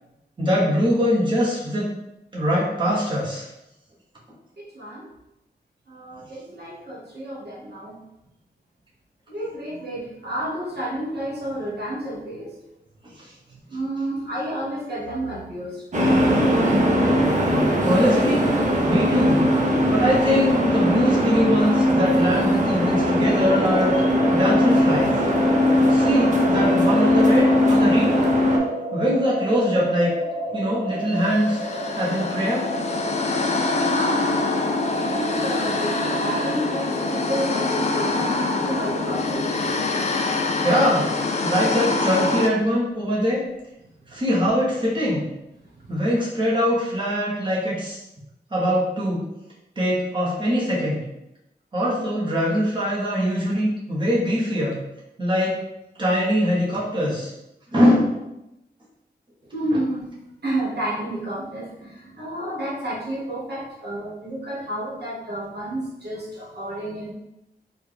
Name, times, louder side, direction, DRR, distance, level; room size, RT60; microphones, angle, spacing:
voice 1, 0.4-1.9 2.3-3.5 13.2-13.3 17.8-18.5 18.9-19.5 19.9-24.0 24.3-25.2 25.9-28.2 28.9-30.1 30.5-31.6 32.0-32.7 40.6-41.1 41.4-43.4 44.1-45.3 45.9-48.0 48.5-49.3 49.8-51.0 51.7-54.8 55.2-55.6 56.0-57.3 57.7-58.1, equal, 25° right, -6 dB, 1.0 m, -22 dB
voice 2, 4.6-5.1 5.9-8.1 9.3-12.5 13.5-15.9 33.9-40.1 44.1-44.2 45.6-45.9 59.5-60.1 60.4-67.1, right 1 dB, 70° right, -5 dB, 1.1 m, -31 dB
sound 1, 15.9-28.6, left 1 dB, 45° right, 0.6 m, -19 dB
sound 2, 22.9-38.3, right 1 dB, 90° right, 0.5 m, -31 dB
sound 3, 31.2-42.5, left 3 dB, 40° left, 0.4 m, -25 dB
4.3 x 2.3 x 3.3 m, 0.89 s
wide cardioid pair, 125°, 18 cm